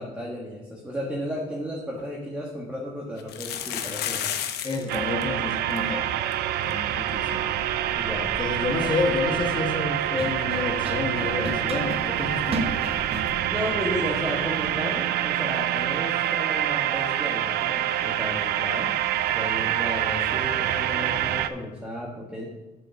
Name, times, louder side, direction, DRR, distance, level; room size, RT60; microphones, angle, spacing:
voice 1, 0.0-4.3 7.2-7.3 7.9-8.3 13.5-18.9 19.3-22.5, equal, 5° right, -3 dB, 1.4 m, -33 dB
sound 1, 1.6-1.7 2.0-2.1 3.2-5.0 5.2-5.3 5.5-5.8 6.3-6.4 6.7-6.8 8.8-8.9, left 9 dB, 75° left, 0.9 m, -31 dB
voice 2, 4.6-6.1 6.6-7.5 8.2-12.6, left 3 dB, 25° left, 2 dB, 1.3 m, -29 dB
sound 2, 4.9-21.5, right 11 dB, 70° right, 0.5 m, -26 dB
Run, 6.8-14.8, right 2 dB, 35° right, 1.1 m, -37 dB
7.3 x 5.2 x 6.8 m, 1.1 s
cardioid pair, 110°, 17 cm